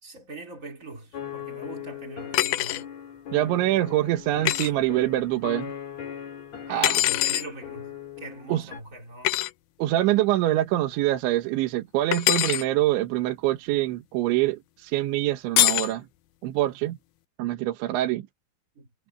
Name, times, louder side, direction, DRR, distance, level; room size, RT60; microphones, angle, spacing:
voice 1, 0.0-2.9 6.7-9.4 18.7-18.9, right 2 dB, 20° right, 2.6 m, -41 dB
sound 1, 1.1-8.8, left 9 dB, 45° left, 3.1 m, -39 dB
sound 2, 2.3-2.8 4.5-4.7 6.8-7.5 9.3-9.5 12.1-12.6 15.6-15.9, left 16 dB, 80° left, 2.2 m, -23 dB
voice 2, 3.3-5.7 6.7-6.9 8.5-8.7 9.8-16.1 16.4-17.0 17.4-18.3, right 15 dB, 85° right, 3.6 m, -25 dB
omnidirectional pair, 5.3 m